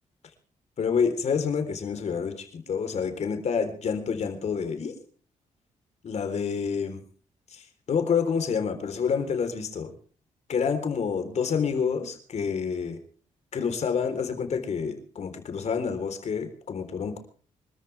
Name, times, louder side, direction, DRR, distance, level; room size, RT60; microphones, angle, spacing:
voice 1, 0.8-4.9 6.0-7.0 7.5-7.6 7.9-9.9 10.5-13.0 13.5-17.2, left 6 dB, 55° left, 7 dB, 3.8 m, -28 dB
25.5 x 13.5 x 3.4 m, 0.42 s
cardioid pair, 100°, 13 cm